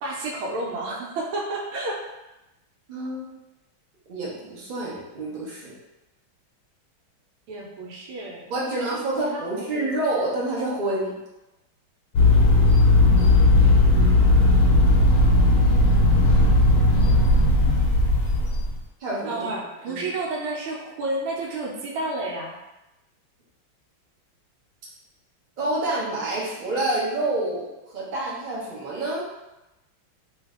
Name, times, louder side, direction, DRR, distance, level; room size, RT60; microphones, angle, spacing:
voice 1, 0.0-2.0 7.5-9.9 19.3-22.5, right 2 dB, 85° right, -2 dB, 1.5 m, -31 dB
voice 2, 2.9-3.4 4.1-5.7 8.5-11.1 19.0-20.1 25.6-29.3, right 2 dB, 50° right, -6 dB, 0.6 m, -28 dB
sound 1, 12.1-18.8, left 2 dB, 70° left, 0.9 m, -17 dB
3.2 x 2.6 x 3.5 m, 0.98 s
omnidirectional pair, 2.3 m